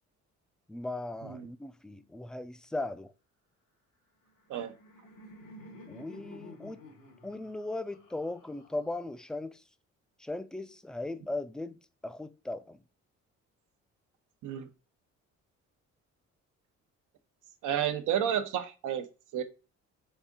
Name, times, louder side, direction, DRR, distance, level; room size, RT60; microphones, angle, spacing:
voice 1, 0.7-3.1 5.9-6.8 7.2-9.6 10.2-12.8, left 2 dB, ahead, 0.4 m, -38 dB
Laughter, 4.3-9.3, left 1 dB, 80° left, 1.6 m, -52 dB
voice 2, 17.6-19.4, right 10 dB, 80° right, 0.8 m, -31 dB
4.1 x 3.5 x 3.6 m
cardioid pair, 90°, 30 cm